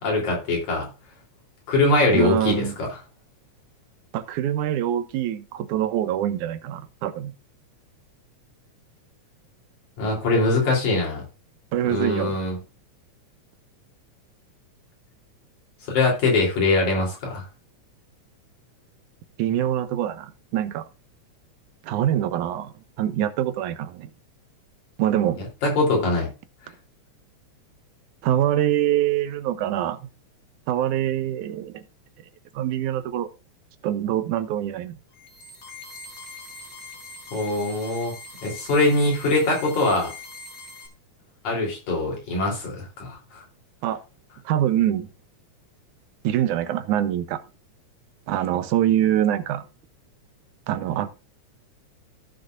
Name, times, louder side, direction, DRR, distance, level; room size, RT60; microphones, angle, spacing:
voice 1, 0.0-0.9 1.7-2.7 10.0-11.2 11.9-12.6 15.9-17.4 25.6-26.3 37.3-38.1 38.4-40.1 41.4-43.4, left 2 dB, 75° left, 4.9 m, -22 dB
voice 2, 2.1-2.8 4.1-7.3 11.7-12.4 19.4-20.9 21.8-24.1 25.0-25.4 28.2-30.0 30.7-31.8 32.5-33.3 33.8-34.9 43.8-44.0 44.5-45.1 46.2-47.4 48.3-49.6 50.7-51.1, right 11 dB, 90° right, 2.3 m, -24 dB
sound 1, 35.1-40.9, left 3 dB, 40° left, 2.4 m, -42 dB
15.5 x 6.6 x 2.6 m
omnidirectional pair, 3.4 m